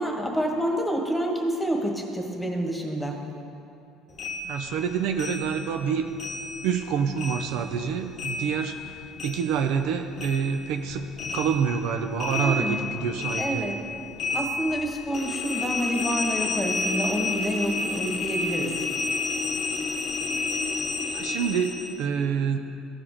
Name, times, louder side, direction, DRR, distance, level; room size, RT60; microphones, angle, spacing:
voice 1, 0.0-3.2 12.3-12.9 13.4-13.8 14.3-18.8, equal, 5° left, 1 dB, 1.5 m, -28 dB
sound 1, 4.2-6.9 7.2-9.9 10.2-22.0, left 3 dB, 40° left, 0.9 m, -31 dB
voice 2, 4.5-6.1 6.6-11.1 11.3-13.7 21.1-22.6, right 7 dB, 75° right, 6 dB, 0.5 m, -27 dB
14.0 x 4.9 x 3.7 m, 2.6 s
supercardioid pair, 80°, 0 cm